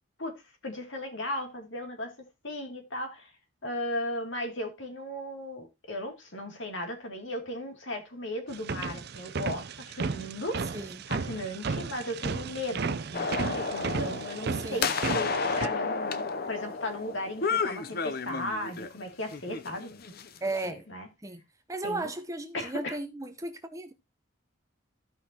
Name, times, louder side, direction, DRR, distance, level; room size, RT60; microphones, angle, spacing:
voice 1, 0.6-2.1 2.4-3.3 3.6-10.8 11.1-19.9 20.6-21.1 21.8-22.1 22.5-23.0, left 1 dB, 60° left, 2.6 m, -36 dB
sound 1, 8.5-15.7, right 4 dB, 50° right, 0.5 m, -34 dB
sound 2, 13.1-18.9 19.3-20.7, left 4 dB, 45° left, 0.6 m, -32 dB
voice 2, 14.5-14.8 20.4-20.9 21.2-21.4 21.7-23.9, right 2 dB, 15° right, 0.7 m, -35 dB
15.0 x 5.7 x 2.9 m
head